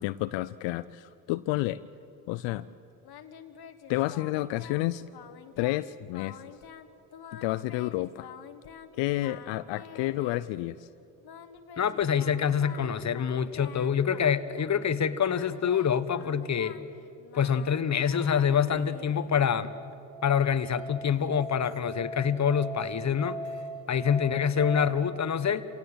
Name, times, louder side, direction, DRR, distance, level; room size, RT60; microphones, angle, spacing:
voice 1, 0.0-1.8 2.3-2.7 3.9-5.0 5.6-6.4 7.3-8.3 9.0-10.9, left 17 dB, 75° left, 14 dB, 0.6 m, -30 dB
Singing, 3.0-4.9 5.1-5.8 6.1-6.9 7.1-8.9 9.2-10.6 11.2-14.8 15.2-19.6, left 8 dB, 55° left, 1.5 m, -47 dB
voice 2, 11.8-16.8 17.3-19.7 20.2-23.4 23.9-25.6, left 7 dB, 35° left, 13 dB, 1.2 m, -26 dB
Musical instrument, 19.6-24.9, right 1 dB, 85° right, 2.2 m, -40 dB
27.0 x 17.5 x 8.0 m, 2.8 s
supercardioid pair, 60°, 45 cm